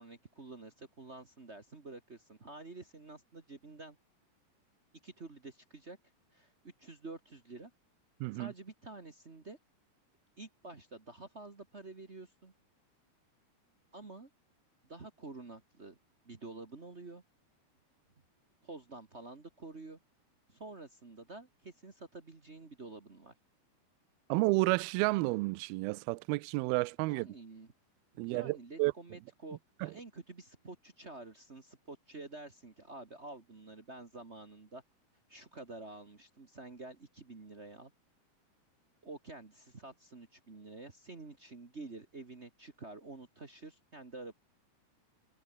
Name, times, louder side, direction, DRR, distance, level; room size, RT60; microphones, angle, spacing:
voice 1, 0.0-4.0 5.0-6.0 6.3-7.7 8.3-9.6 10.4-12.5 13.9-14.3 14.8-16.0 16.2-17.2 18.6-20.0 20.5-23.3 27.1-27.7 28.1-34.8 35.3-37.9 39.0-44.3, right 3 dB, 70° right, 0.6 m, -49 dB
voice 2, 8.2-8.5 24.3-27.3 28.2-28.9 29.8-29.9, right 23 dB, 90° right, 2.2 m, -31 dB
omnidirectional pair, 4.9 m